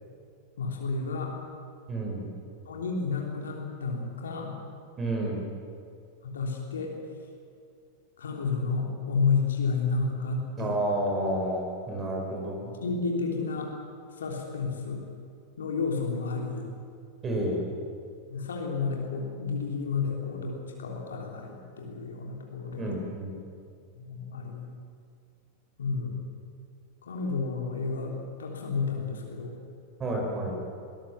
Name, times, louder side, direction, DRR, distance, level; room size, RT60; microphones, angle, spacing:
voice 1, 0.6-1.3 2.6-4.6 6.2-6.9 8.2-10.7 12.8-13.7 14.2-15.0 15.6-16.7 18.3-22.9 23.9-24.7 25.8-26.2 27.0-28.1 28.4-29.5, left 4 dB, 65° left, 0 dB, 3.4 m, -31 dB
voice 2, 1.9-2.4 5.0-5.5 10.6-12.7 17.2-17.7 22.8-23.3 30.0-30.6, right 1 dB, 25° right, 0 dB, 5.1 m, -30 dB
22.0 x 19.5 x 7.3 m, 2.4 s
figure-of-eight pair, 90°, 0 cm